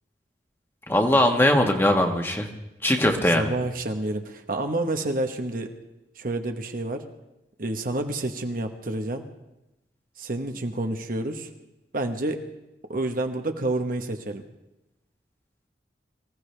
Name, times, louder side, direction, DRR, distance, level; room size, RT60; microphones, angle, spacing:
voice 1, 0.9-2.5 2.8-3.5, left 1 dB, 15° left, 3 dB, 1.4 m, -20 dB
voice 2, 3.2-5.7 6.2-7.0 7.6-9.3 10.2-11.5 11.9-12.4 12.9-14.4, right 2 dB, 55° right, 5 dB, 1.2 m, -29 dB
24.5 x 15.5 x 3.4 m, 0.94 s
head